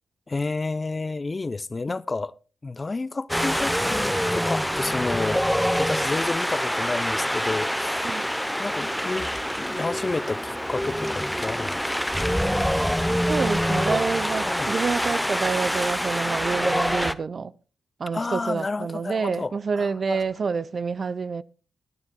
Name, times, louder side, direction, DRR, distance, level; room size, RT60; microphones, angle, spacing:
voice 1, 0.3-2.3 2.6-5.5 5.8-8.1 8.6-9.3 9.6-11.9 14.4-14.7 18.1-20.2, left 3 dB, 35° left, 0.5 m, -30 dB
Wind, 3.3-17.1, equal, ahead, 0.7 m, -25 dB
voice 2, 13.3-17.5 18.0-21.4, right 5 dB, 50° right, 0.5 m, -28 dB
24.0 x 9.6 x 2.2 m
hypercardioid pair, 40°, 0 cm